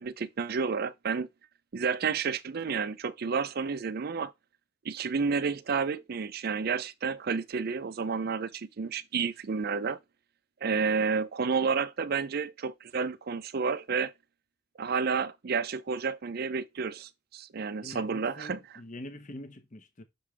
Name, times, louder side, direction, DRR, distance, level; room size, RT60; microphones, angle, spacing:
voice 1, 0.0-1.3 1.7-4.3 4.8-10.0 10.6-14.1 14.8-18.6, right 5 dB, 45° right, 0.4 m, -30 dB
voice 2, 17.8-20.0, left 1 dB, 35° left, 0.8 m, -44 dB
6.0 x 5.0 x 3.3 m
head